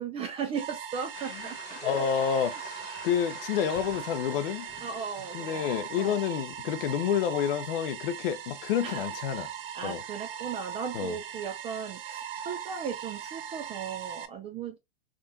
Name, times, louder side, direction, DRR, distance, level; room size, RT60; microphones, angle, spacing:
voice 1, 0.0-2.1 4.8-5.7 6.0-6.2 8.8-14.8, right 6 dB, 20° right, 0.4 m, -37 dB
sound 1, 0.5-14.3, right 9 dB, 60° right, 0.7 m, -40 dB
sound 2, 1.1-6.2, left 5 dB, 30° left, 1.1 m, -47 dB
voice 2, 1.8-2.8 3.0-4.7 5.3-9.5 9.8-10.0 10.9-11.2, left 9 dB, 60° left, 0.6 m, -29 dB
3.6 x 2.4 x 2.6 m
hypercardioid pair, 110°, 31 cm